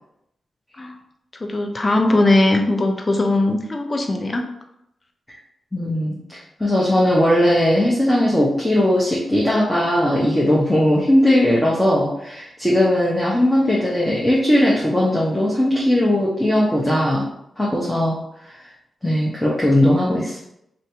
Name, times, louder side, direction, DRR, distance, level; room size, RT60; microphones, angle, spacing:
voice 1, 1.4-4.5, left 2 dB, 40° left, 4 dB, 0.6 m, -19 dB
voice 2, 5.7-17.3 17.6-18.2 19.0-20.4, left 1 dB, 15° left, -5 dB, 0.9 m, -18 dB
2.7 x 2.7 x 3.5 m, 0.79 s
supercardioid pair, 40°, 0 cm